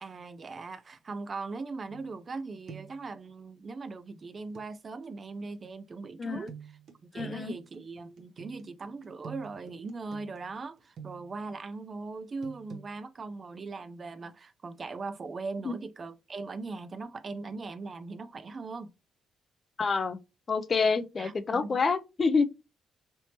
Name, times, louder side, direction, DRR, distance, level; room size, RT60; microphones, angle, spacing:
voice 1, 0.0-6.5 7.0-18.9 21.2-21.8, right 3 dB, 40° right, 0.4 m, -40 dB
sound 1, 1.9-2.4 2.7-3.1 4.5-4.7 6.5-11.5 12.4-12.9, right 6 dB, 65° right, 0.7 m, -48 dB
voice 2, 6.2-6.5 7.1-7.5 15.6-15.8 19.8-20.2 20.5-22.5, left 4 dB, 40° left, 0.4 m, -27 dB
3.3 x 2.9 x 2.8 m
cardioid pair, 90°, 0 cm